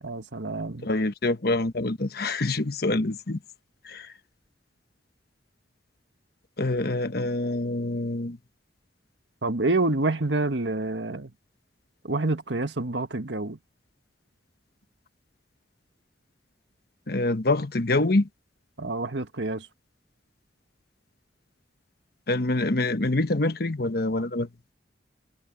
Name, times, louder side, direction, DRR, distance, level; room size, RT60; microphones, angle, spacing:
voice 1, 0.0-0.9 9.4-11.3 12.0-13.6 18.8-19.7, right 2 dB, 80° right, 1.7 m, -27 dB
voice 2, 0.8-3.4 3.8-4.1 6.6-8.4 17.1-18.3 22.3-24.5, left 2 dB, 60° left, 1.2 m, -25 dB
head